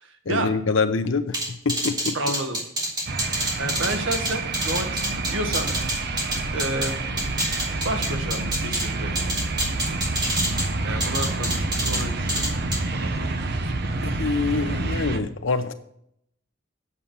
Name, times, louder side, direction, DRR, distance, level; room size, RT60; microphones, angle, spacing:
voice 1, 0.3-1.4 1.6-2.2 14.2-15.7, left 4 dB, 90° left, 9 dB, 0.9 m, -25 dB
sound 1, 1.3-6.9 7.2-8.9 9.2-10.7 11.0-12.0 12.3-12.8, right 1 dB, 20° right, 2.5 m, -27 dB
voice 2, 2.1-2.6 3.6-5.7 6.5-7.3 7.8-9.2 10.8-12.5 12.9-13.7, right 1 dB, 85° right, 5 dB, 1.7 m, -30 dB
sound 2, 3.1-15.2, right 2 dB, 55° right, 0.9 m, -28 dB
8.5 x 7.4 x 5.5 m, 0.72 s
head